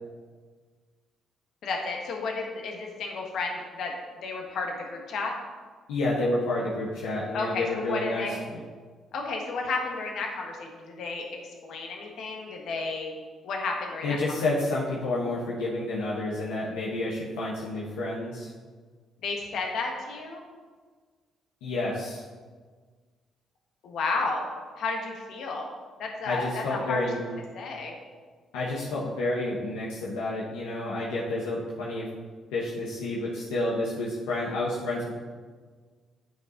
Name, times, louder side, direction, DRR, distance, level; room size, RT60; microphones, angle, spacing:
voice 1, 1.6-3.9 4.2-5.3 7.3-8.4 9.1-13.1 13.4-14.2 19.2-20.4 23.8-24.4 24.7-25.7 26.0-27.9, left 3 dB, 70° left, 1 dB, 1.5 m, -32 dB
voice 2, 5.9-8.6 14.0-18.5 21.6-22.2 26.2-27.2 28.5-32.1 32.5-35.2, left 2 dB, 85° left, -6 dB, 1.1 m, -30 dB
9.0 x 5.3 x 4.0 m, 1.5 s
supercardioid pair, 55°, 0 cm